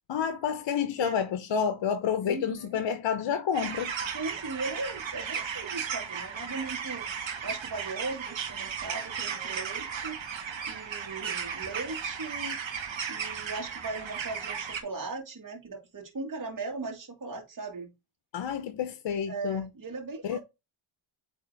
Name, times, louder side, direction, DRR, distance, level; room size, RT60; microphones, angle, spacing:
voice 1, 0.1-3.9 18.3-19.7 20.2-20.4, left 7 dB, 65° left, 0.8 m, -29 dB
voice 2, 2.2-2.8 4.1-7.1 7.4-10.2 10.7-12.6 13.1-17.9 19.3-20.4, right 3 dB, 40° right, 2.0 m, -38 dB
sound 1, 3.5-14.8, right 7 dB, 70° right, 1.4 m, -35 dB
8.8 x 3.5 x 3.4 m
cardioid pair, 50°, 47 cm